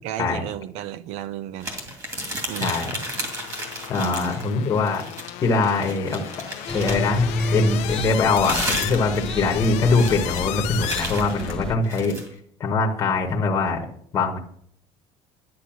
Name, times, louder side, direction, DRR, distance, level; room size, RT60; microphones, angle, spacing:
voice 1, 0.0-1.7 2.5-2.7 4.0-4.5, right 11 dB, 60° right, 0.7 m, -33 dB
sound 1, 1.6-4.5 4.8-7.2 7.9-12.3, right 1 dB, 25° right, 2.5 m, -33 dB
sound 2, 2.5-11.6, left 18 dB, 65° left, 0.5 m, -34 dB
voice 2, 2.6-2.9 3.9-5.0 5.4-6.2 6.7-7.2 7.5-12.2 12.6-13.9 14.1-14.4, left 4 dB, 25° left, 1.2 m, -22 dB
sound 3, 6.7-11.8, left 1 dB, 5° left, 0.7 m, -29 dB
10.5 x 9.6 x 6.0 m
cardioid pair, 175°, 12 cm